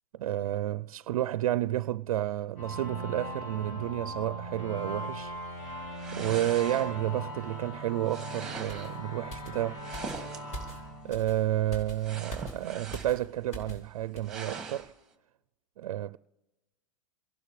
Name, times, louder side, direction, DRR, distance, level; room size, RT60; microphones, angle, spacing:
voice 1, 0.1-5.4 6.1-10.3 11.0-14.9 15.8-16.2, right 13 dB, 85° right, 0.4 m, -31 dB
sound 1, 2.6-11.9, equal, 70° left, 7.1 m, -40 dB
sound 2, 6.0-7.2 8.1-9.0 9.7-10.7 12.0-13.3 13.7-13.8 14.2-14.9, right 4 dB, 5° right, 2.0 m, -42 dB
sound 3, 8.7-13.9 14.2-14.4, right 1 dB, 45° left, 4.3 m, -44 dB
28.0 x 12.0 x 3.2 m
hypercardioid pair, 140°, 18 cm